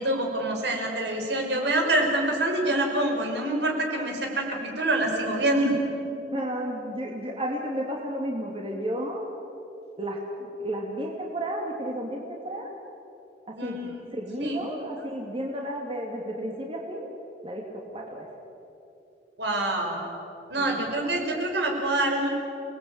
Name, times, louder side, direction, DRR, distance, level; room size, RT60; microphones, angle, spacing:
voice 1, 0.0-5.8 13.6-13.9 14.4-14.6 19.4-20.0 20.5-22.3, right 1 dB, 70° right, 2 dB, 5.4 m, -26 dB
voice 2, 6.3-9.2 10.0-12.7 13.5-17.1 17.4-17.6 17.9-18.3 20.6-21.4, equal, 30° right, -1 dB, 2.8 m, -33 dB
29.5 x 20.0 x 9.0 m, 2.8 s
head